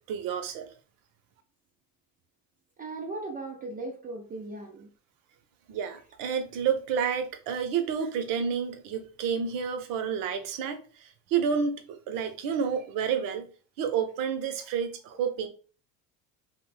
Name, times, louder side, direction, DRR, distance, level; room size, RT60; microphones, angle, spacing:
voice 1, 0.1-0.7 5.7-13.5 13.8-15.5, right 7 dB, 60° right, 0.7 m, -30 dB
voice 2, 2.8-4.9, right 2 dB, 25° right, 0.3 m, -37 dB
2.9 x 2.1 x 3.1 m
supercardioid pair, 115°, 37 cm